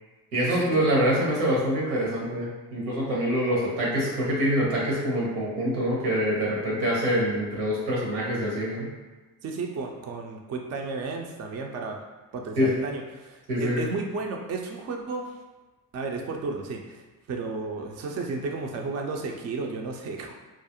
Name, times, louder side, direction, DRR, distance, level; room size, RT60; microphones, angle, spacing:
voice 1, 0.3-8.9 12.6-12.7 13.5-13.8, equal, 90° right, -4 dB, 0.9 m, -25 dB
voice 2, 9.4-12.0 12.3-15.3 15.9-17.0 17.3-20.3, right 3 dB, 35° right, 2 dB, 0.4 m, -33 dB
2.3 x 2.0 x 2.8 m, 1.2 s
hypercardioid pair, 60°, 46 cm